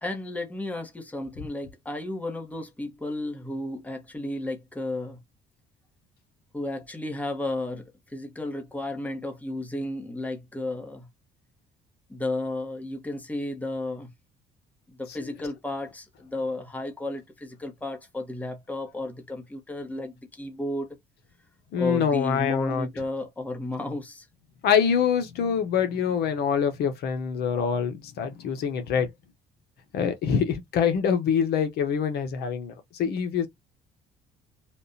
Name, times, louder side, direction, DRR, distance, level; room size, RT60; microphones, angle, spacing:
voice 1, 0.0-5.2 6.5-11.1 12.1-14.1 14.9-20.9 21.8-24.3, left 2 dB, 10° left, 1.1 m, -33 dB
voice 2, 21.7-22.9 24.6-29.1 29.9-32.7 33.0-33.5, left 7 dB, 70° left, 0.9 m, -25 dB
3.5 x 2.5 x 2.6 m
cardioid pair, 110°, 17 cm